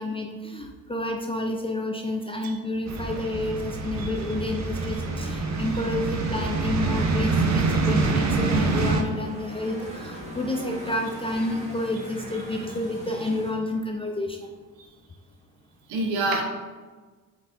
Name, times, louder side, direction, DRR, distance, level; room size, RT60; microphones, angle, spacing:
voice 1, 0.0-14.5, left 1 dB, 15° left, 1 dB, 0.4 m, -30 dB
sound 1, 2.9-9.0, right 3 dB, 35° right, 0.7 m, -25 dB
voice 2, 4.0-4.5 14.8-14.9 15.9-16.4, right 2 dB, 70° right, 2 dB, 0.9 m, -28 dB
sound 2, 5.2-13.5, equal, 15° right, 1.5 m, -42 dB
5.1 x 3.9 x 2.4 m, 1.4 s
hypercardioid pair, 45°, 48 cm